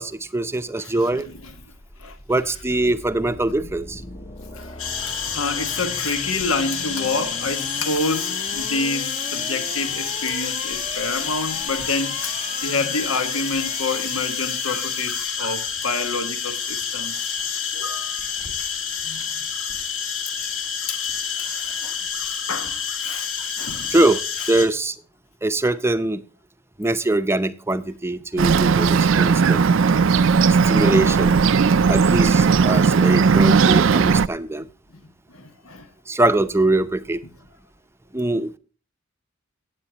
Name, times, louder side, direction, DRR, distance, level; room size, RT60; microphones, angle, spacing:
voice 1, 0.0-1.3 2.3-4.0 23.9-24.2 24.5-24.9 25.4-26.2 26.8-29.6 30.5-31.4 31.9-34.7 36.1-37.2 38.1-38.6, right 2 dB, 10° right, 0.6 m, -22 dB
voice 2, 0.8-1.3 2.0-2.2 4.5-17.3 17.7-18.2 19.0-19.5 20.9-22.0 22.5-23.9 29.9-30.0 30.3-30.5 31.7-31.9 35.3-35.9, left 3 dB, 85° left, 1.5 m, -29 dB
sound 1, 1.6-15.3, left 4 dB, 30° left, 0.9 m, -37 dB
sound 2, 4.8-24.7, left 7 dB, 65° left, 2.5 m, -28 dB
Bird, 28.4-34.3, right 5 dB, 65° right, 0.4 m, -17 dB
17.0 x 8.6 x 2.9 m
head